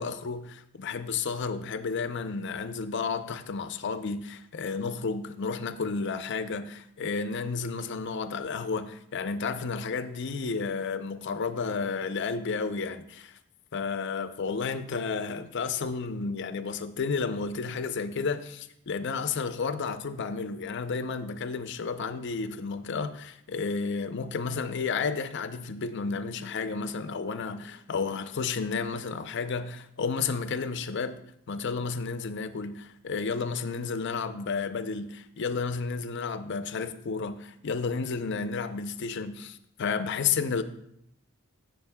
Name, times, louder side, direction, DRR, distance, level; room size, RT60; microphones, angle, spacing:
voice 1, 0.0-13.4 13.7-40.6, left 5 dB, 55° left, 0.5 m, -32 dB
16.5 x 6.3 x 2.2 m
head